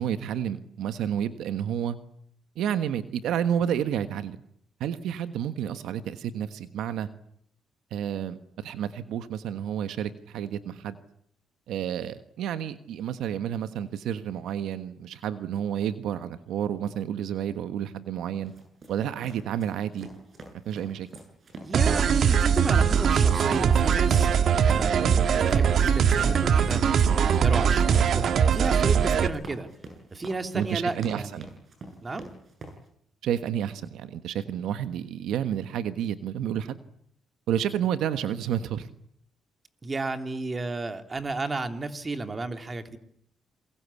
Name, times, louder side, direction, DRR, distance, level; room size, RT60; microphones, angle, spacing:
voice 1, 0.0-2.0 2.6-4.4 4.8-7.1 7.9-11.0 11.7-18.5 18.9-20.1 20.6-21.1 30.5-31.5 33.2-36.8 37.5-38.9, right 9 dB, 80° right, 11 dB, 1.4 m, -30 dB
sound 1, 18.5-32.8, right 2 dB, 45° right, 7.9 m, -45 dB
voice 2, 21.6-24.3 24.7-26.8 27.1-29.7 30.1-31.5 32.0-32.3 39.8-43.0, right 3 dB, 30° right, 7 dB, 2.9 m, -33 dB
sound 2, 21.7-29.3, right 7 dB, 60° right, 1.7 m, -21 dB
28.5 x 22.5 x 8.4 m, 0.70 s
cardioid pair, 90°, 0 cm